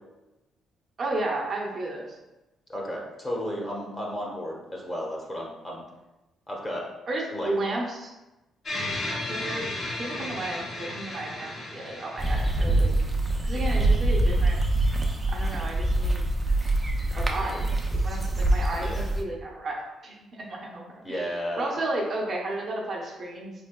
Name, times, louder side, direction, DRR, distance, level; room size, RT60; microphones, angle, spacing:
voice 1, 1.0-2.2 7.1-8.1 9.3-9.7 10.0-12.9 13.4-14.6 15.3-16.3 17.1-23.5, right 2 dB, 50° right, -2 dB, 0.8 m, -33 dB
voice 2, 2.7-5.8 6.5-6.8 7.3-7.5 18.8-19.1 21.0-21.7, equal, 25° left, -2 dB, 1.0 m, -33 dB
sound 1, 8.7-13.0, left 1 dB, 55° left, 0.9 m, -34 dB
sound 2, 12.2-19.2, right 1 dB, 15° right, 0.5 m, -24 dB
3.8 x 3.3 x 2.2 m, 1.0 s
cardioid pair, 90°, 0 cm